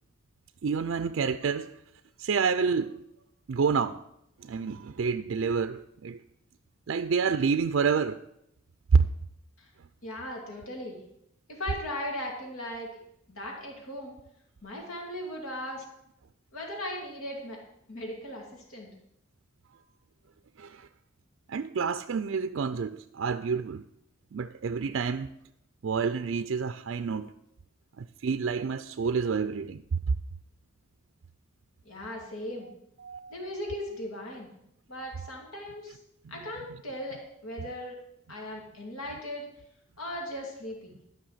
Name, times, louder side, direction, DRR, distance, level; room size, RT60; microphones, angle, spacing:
voice 1, 0.6-1.7 2.2-3.0 3.5-4.0 4.4-6.2 6.9-8.2 8.9-9.0 20.6-20.9 21.5-23.8 24.3-25.3 25.8-27.3 28.0-30.0 33.0-33.5, right 5 dB, 60° right, 0.4 m, -28 dB
voice 2, 10.0-11.0 11.5-13.0 13.3-14.1 14.6-15.8 16.5-17.6 17.9-18.9 31.8-32.7 33.3-34.5 34.9-36.0 36.3-38.0 38.3-39.5 40.0-41.0, left 1 dB, 85° left, 2.6 m, -38 dB
13.0 x 5.7 x 7.3 m
head